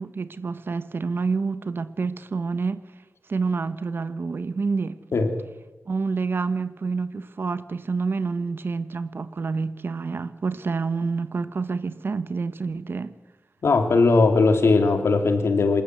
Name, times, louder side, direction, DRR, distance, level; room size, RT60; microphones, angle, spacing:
voice 1, 0.0-2.9 3.3-5.0 5.9-13.1, right 4 dB, 60° right, 1.1 m, -28 dB
voice 2, 13.6-15.8, left 3 dB, 80° left, 2.6 m, -19 dB
27.0 x 14.0 x 8.2 m
wide cardioid pair, 125°, 4 cm